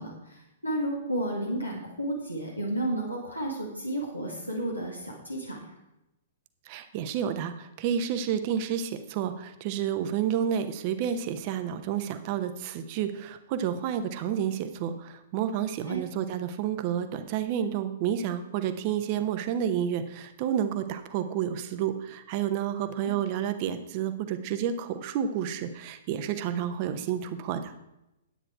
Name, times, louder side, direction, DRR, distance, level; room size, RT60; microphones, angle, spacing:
voice 1, 0.0-5.7 15.9-16.0 23.0-23.1, right 1 dB, 90° left, -2 dB, 1.9 m, -32 dB
voice 2, 6.7-27.7, right 9 dB, 35° right, 9 dB, 0.9 m, -30 dB
10.0 x 8.9 x 4.6 m, 0.90 s
figure-of-eight pair, 110°, 0 cm